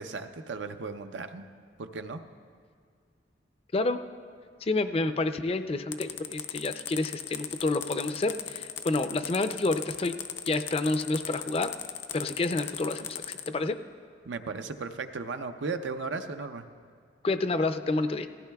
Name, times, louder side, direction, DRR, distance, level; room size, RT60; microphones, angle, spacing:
voice 1, 0.0-1.4 1.8-2.2 14.2-16.6, right 4 dB, 90° right, 8 dB, 0.6 m, -36 dB
voice 2, 4.6-10.1 10.5-11.7 12.1-13.8 17.2-18.3, left 2 dB, 30° left, 10 dB, 0.4 m, -29 dB
sound 1, 5.9-13.5, left 10 dB, 85° left, 0.6 m, -37 dB
18.0 x 14.5 x 2.3 m, 2.1 s
head